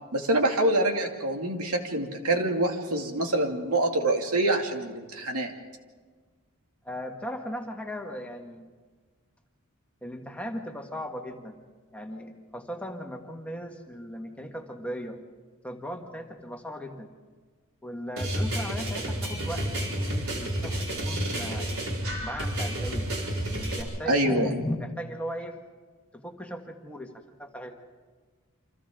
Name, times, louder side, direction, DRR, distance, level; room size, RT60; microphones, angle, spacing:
voice 1, 0.1-5.5 24.1-24.6, right 1 dB, 90° right, 3 dB, 2.5 m, -26 dB
voice 2, 6.8-8.7 10.0-11.6 11.9-15.2 15.6-17.1 17.8-21.7 22.2-23.1 23.5-25.6 26.1-27.8, equal, 5° left, 2 dB, 1.8 m, -37 dB
sound 1, 18.2-23.8, right 1 dB, 70° right, 4.8 m, -30 dB
29.0 x 26.0 x 3.8 m, 1.4 s
head